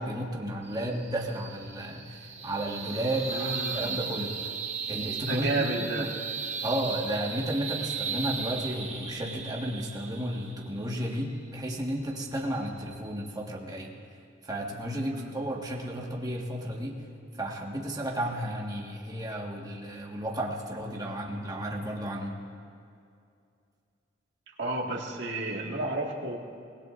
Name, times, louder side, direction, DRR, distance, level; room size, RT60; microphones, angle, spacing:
voice 1, 0.0-4.5 4.9-5.7 5.9-6.1 6.6-13.9 14.4-17.0 17.4-22.4, right 1 dB, 20° right, -1 dB, 1.6 m, -33 dB
sound 1, 0.6-13.3, right 6 dB, 35° right, 1.3 m, -37 dB
voice 2, 3.3-4.0 5.3-6.1 15.1-15.3 24.6-26.4, right 2 dB, 65° right, -1 dB, 1.9 m, -31 dB
25.0 x 19.0 x 2.6 m, 2.4 s
head